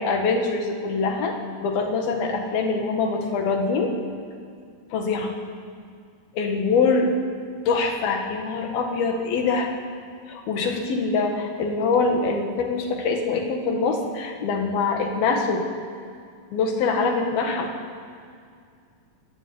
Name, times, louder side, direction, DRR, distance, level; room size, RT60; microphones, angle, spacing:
voice 1, 0.0-3.9 4.9-5.3 6.4-7.1 7.7-9.7 10.3-15.7 16.5-17.7, left 4 dB, 80° left, 3 dB, 3.8 m, -24 dB
27.5 x 11.5 x 9.6 m, 2.3 s
omnidirectional pair, 4.2 m